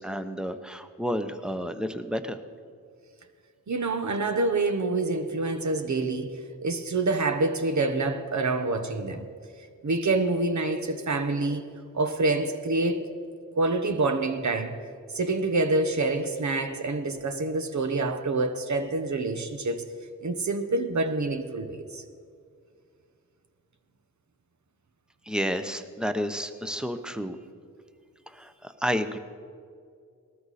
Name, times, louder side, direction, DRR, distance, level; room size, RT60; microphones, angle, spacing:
voice 1, 0.0-2.4 25.3-27.4 28.3-29.2, equal, ahead, 0.9 m, -31 dB
voice 2, 3.7-9.2 9.8-11.6 11.9-13.0 13.6-14.8 15.1-19.8 20.2-22.0, right 3 dB, 55° right, 1.2 m, -27 dB
19.0 x 13.0 x 4.3 m
cardioid pair, 60°, 34 cm